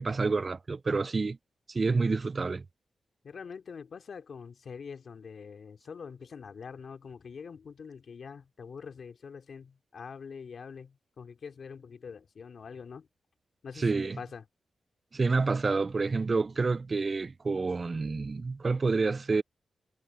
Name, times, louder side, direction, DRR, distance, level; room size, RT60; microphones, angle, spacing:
voice 1, 0.0-1.4 1.7-2.6 13.8-14.2 15.1-19.4, right 4 dB, 40° right, 0.3 m, -28 dB
voice 2, 3.2-13.1 13.6-14.4, left 6 dB, 65° left, 2.8 m, -44 dB
cardioid pair, 85°, 0 cm